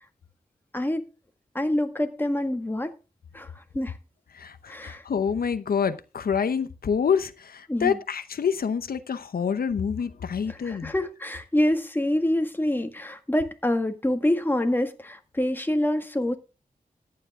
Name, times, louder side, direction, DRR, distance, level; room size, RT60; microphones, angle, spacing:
voice 1, 1.6-2.9 3.3-3.9 4.7-5.0 7.7-8.0 10.6-16.4, left 1 dB, 15° left, 1.7 m, -26 dB
voice 2, 4.3-10.9, left 7 dB, 80° left, 0.8 m, -27 dB
14.5 x 9.7 x 3.7 m
wide cardioid pair, 75°, 15 cm